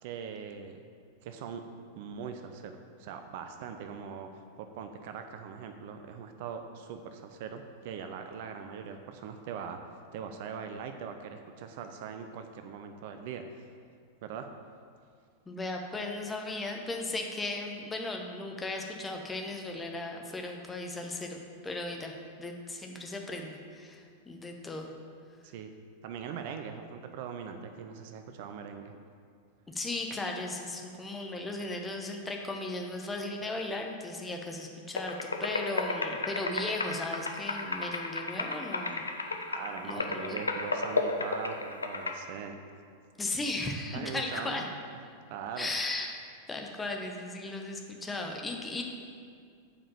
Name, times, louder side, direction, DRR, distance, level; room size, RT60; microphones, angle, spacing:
voice 1, 0.0-0.8 1.2-1.6 1.9-9.8 10.1-13.6 14.2-14.5 25.4-25.7 26.0-28.9 39.5-42.8 43.9-44.7 45.3-45.7, right 7 dB, 50° right, 7 dB, 0.5 m, -41 dB
voice 2, 15.5-22.1 22.4-24.9 29.7-39.0 39.8-40.4 43.2-44.6 45.6-46.2 46.5-48.8, left 2 dB, 15° left, 2 dB, 1.0 m, -36 dB
sound 1, 34.9-42.1, left 3 dB, 75° left, 0.6 m, -33 dB
7.4 x 4.9 x 6.9 m, 2.2 s
figure-of-eight pair, 90°, 0 cm